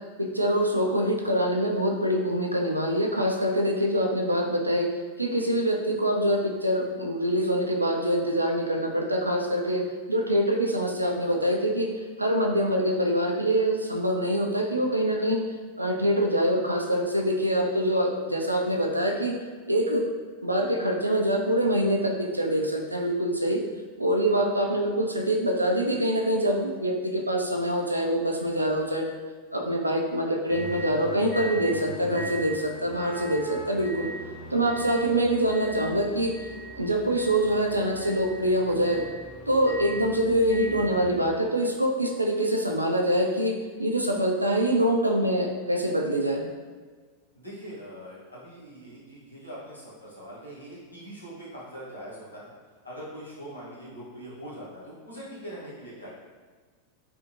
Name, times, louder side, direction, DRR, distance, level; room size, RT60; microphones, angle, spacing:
voice 1, 0.2-4.9 5.2-11.9 12.2-15.4 15.8-19.4 19.7-20.1 20.4-23.6 24.0-29.1 29.5-34.1 34.5-36.4 36.7-39.0 39.5-46.5, equal, 85° right, 1 dB, 0.3 m, -25 dB
sound 1, 30.5-41.3, right 1 dB, 30° left, 0.6 m, -39 dB
voice 2, 47.3-52.5 52.8-56.1, equal, 85° left, -8 dB, 0.9 m, -42 dB
2.7 x 2.4 x 2.5 m, 1.5 s
figure-of-eight pair, 90°, 0 cm